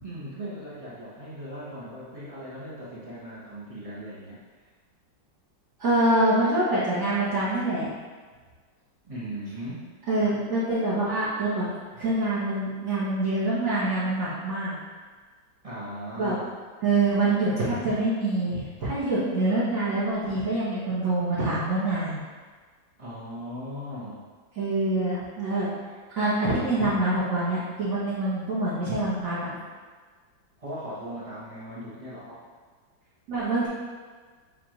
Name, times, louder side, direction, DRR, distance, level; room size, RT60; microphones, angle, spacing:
voice 1, 0.0-4.7 9.0-9.8 15.6-16.5 23.0-24.2 30.6-32.4, equal, 30° right, -8 dB, 0.6 m, -38 dB
voice 2, 5.8-7.9 10.1-11.7 12.0-14.7 16.1-16.4 16.8-22.2 24.5-25.7 26.2-29.5 33.3-33.7, right 2 dB, 55° right, -12 dB, 1.3 m, -25 dB
7.1 x 2.4 x 2.9 m, 1.5 s
omnidirectional pair, 1.9 m